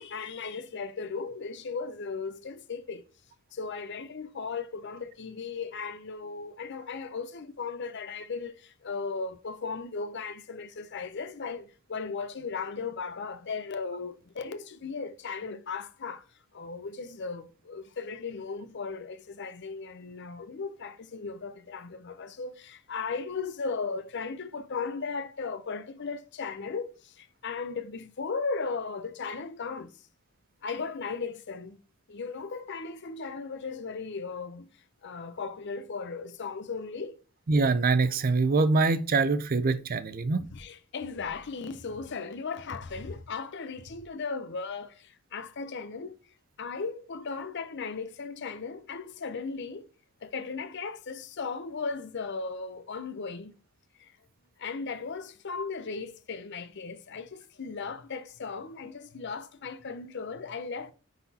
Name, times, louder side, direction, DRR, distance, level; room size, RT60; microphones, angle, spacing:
voice 1, 0.0-3.0 3.5-16.2 16.5-30.0 30.6-31.8 32.1-34.7 35.0-37.2 40.4-46.2 46.6-49.9 50.2-53.5 54.0-54.2 54.6-60.9, left 4 dB, 50° left, 0.6 m, -36 dB
voice 2, 37.5-40.4, right 3 dB, 40° right, 0.5 m, -24 dB
9.4 x 4.1 x 2.8 m
head